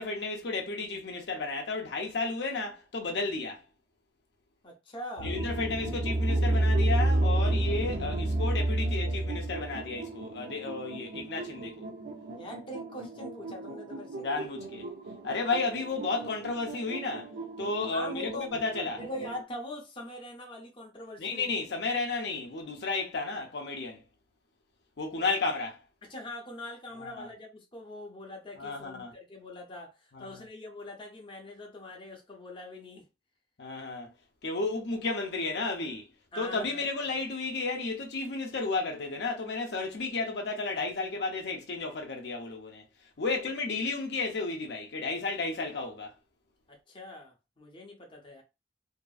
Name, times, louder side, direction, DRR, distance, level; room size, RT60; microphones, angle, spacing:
voice 1, 0.0-3.6 5.2-11.9 14.2-14.9 15.2-17.3 17.6-19.0 21.2-24.0 25.0-25.8 27.0-27.3 28.6-29.1 30.1-30.4 33.6-34.1 34.4-36.1 36.4-42.8 43.2-46.1, left 3 dB, 65° left, 0.6 m, -33 dB
voice 2, 4.6-5.4 12.4-14.3 17.9-18.5 19.0-21.5 25.1-25.3 26.1-33.0 36.3-36.8 43.2-43.5 46.7-48.4, left 1 dB, 30° left, 0.7 m, -42 dB
sound 1, 5.2-19.4, right 1 dB, 80° right, 0.5 m, -31 dB
2.7 x 2.5 x 2.4 m
head